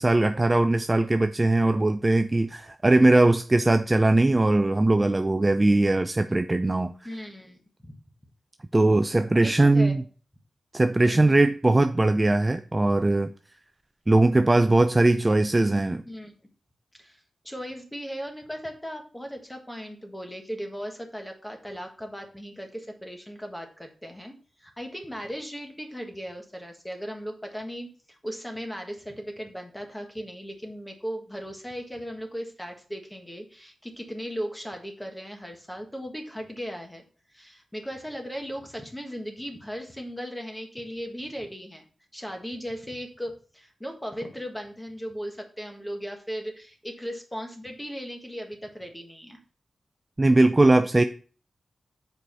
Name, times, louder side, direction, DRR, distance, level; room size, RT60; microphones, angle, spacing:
voice 1, 0.0-6.9 8.7-10.0 10.7-13.3 14.1-16.0 50.2-51.0, right 2 dB, 20° right, 0.4 m, -20 dB
voice 2, 7.0-7.9 9.4-10.1 11.0-11.5 16.1-16.3 17.0-17.2 17.4-24.3 24.6-37.0 37.3-41.9 42.1-49.4, equal, 10° left, 1.6 m, -37 dB
6.8 x 4.7 x 5.4 m
wide cardioid pair, 105°, 0 cm